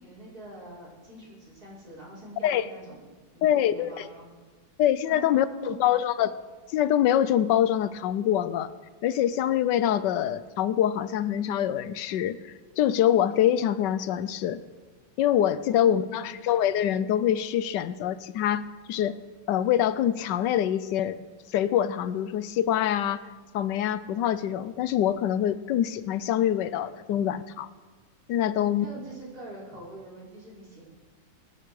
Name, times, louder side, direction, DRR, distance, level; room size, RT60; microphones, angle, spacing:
voice 1, 0.0-3.0 3.4-4.3 5.1-6.0 15.6-16.5 28.5-30.9, right 1 dB, 50° right, -6 dB, 5.6 m, -44 dB
voice 2, 3.4-4.1 4.8-6.4 6.7-8.7 9.0-14.6 15.2-18.6 18.9-19.2 19.5-21.2 21.5-23.2 23.5-27.7 28.3-28.9, left 10 dB, 70° left, 15 dB, 1.2 m, -25 dB
24.0 x 9.8 x 4.8 m, 1.3 s
omnidirectional pair, 2.1 m